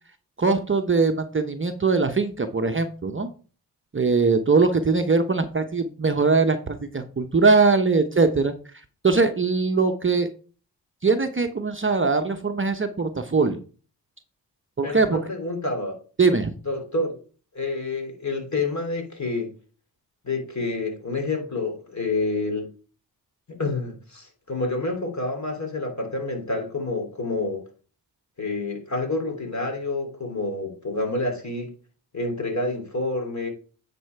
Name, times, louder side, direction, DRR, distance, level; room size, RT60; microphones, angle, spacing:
voice 1, 0.4-3.3 3.9-8.5 9.0-10.3 11.0-13.6 14.8-15.2 16.2-16.5, right 4 dB, 25° right, 0.9 m, -21 dB
voice 2, 14.8-15.9 16.6-17.2 17.5-19.5 20.2-22.7 23.5-27.6 28.4-31.7 32.1-33.5, left 2 dB, 35° left, 3.4 m, -28 dB
9.3 x 4.4 x 4.6 m
supercardioid pair, 40°, 46 cm